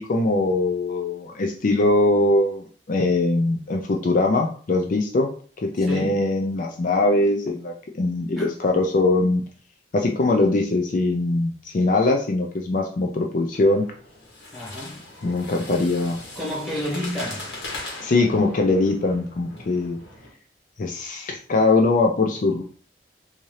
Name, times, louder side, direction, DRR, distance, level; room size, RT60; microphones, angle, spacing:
voice 1, 0.0-5.3 5.8-9.4 9.9-13.8 15.2-16.2 18.0-20.0 20.8-22.6, left 2 dB, 45° left, 0.4 m, -21 dB
voice 2, 5.8-6.2 8.4-8.5 14.5-15.0 16.4-17.5, left 1 dB, ahead, 1.6 m, -30 dB
sound 1, 13.5-20.3, left 2 dB, 70° left, 1.4 m, -39 dB
3.6 x 2.8 x 3.1 m
head